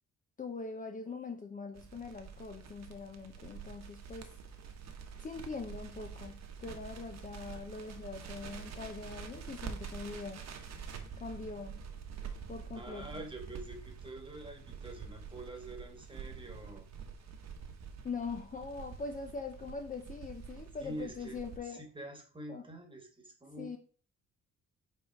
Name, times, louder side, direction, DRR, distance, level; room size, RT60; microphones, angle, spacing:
voice 1, 0.4-4.3 5.2-10.4 11.2-11.8 12.5-13.0 18.0-21.8 22.5-22.6 23.6-23.8, left 4 dB, 25° left, 5 dB, 0.7 m, -42 dB
Crackle, 1.7-21.6, right 6 dB, 60° right, 1.2 m, -47 dB
voice 2, 12.7-16.9 20.8-21.4 21.6-23.7, right 1 dB, 15° right, 4 dB, 1.5 m, -46 dB
5.6 x 4.0 x 5.9 m, 0.42 s
cardioid pair, 140°, 31 cm